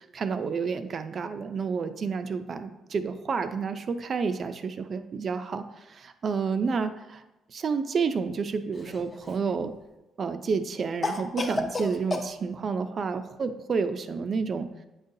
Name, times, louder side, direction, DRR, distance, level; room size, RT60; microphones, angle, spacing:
voice 1, 0.0-7.2 7.5-9.7 10.2-14.7, right 5 dB, 35° right, 9 dB, 0.4 m, -30 dB
Cough, 8.7-9.5 11.0-12.3, left 3 dB, 20° left, 0.5 m, -31 dB
9.4 x 3.9 x 2.7 m, 0.99 s
cardioid pair, 175°, 0 cm